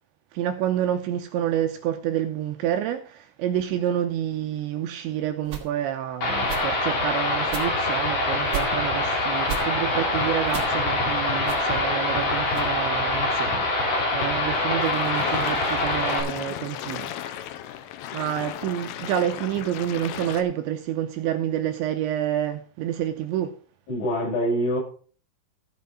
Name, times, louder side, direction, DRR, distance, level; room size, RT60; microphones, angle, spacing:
voice 1, 0.3-17.5 18.1-23.6, right 11 dB, 80° right, 2.8 m, -28 dB
sound 1, 5.4-5.7 6.4-6.6 7.4-7.7 8.4-8.7 9.4-9.6 10.4-10.8 11.4-11.6 12.4-12.7, right 7 dB, 45° right, 2.5 m, -34 dB
sound 2, 6.2-16.2, left 2 dB, 45° left, 4.8 m, -24 dB
sound 3, 14.8-20.4, left 11 dB, 85° left, 3.5 m, -36 dB
voice 2, 23.9-24.8, equal, 70° left, 9.8 m, -24 dB
15.0 x 6.1 x 5.6 m
omnidirectional pair, 5.8 m